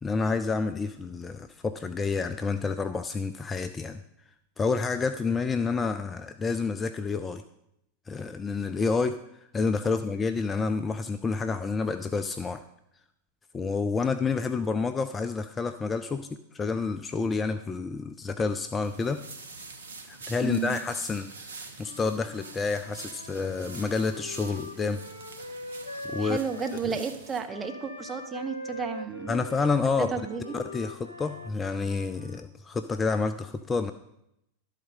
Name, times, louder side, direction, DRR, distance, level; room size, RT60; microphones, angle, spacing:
voice 1, 0.0-4.0 4.6-7.4 8.1-9.2 9.5-12.6 13.5-19.2 20.1-25.0 26.0-26.4 29.3-30.1 30.5-33.9, left 4 dB, 15° left, 9 dB, 0.4 m, -29 dB
sound 1, 18.8-27.4, right 4 dB, 65° right, 1.0 m, -46 dB
voice 2, 20.4-20.7 26.2-29.4 30.1-30.4, right 6 dB, 20° right, 5 dB, 0.9 m, -32 dB
Wind instrument woodwind instrument, 21.8-26.8 27.5-32.5, left 1 dB, 85° left, 0.7 m, -42 dB
12.0 x 4.1 x 5.4 m, 0.80 s
figure-of-eight pair, 90°, 0 cm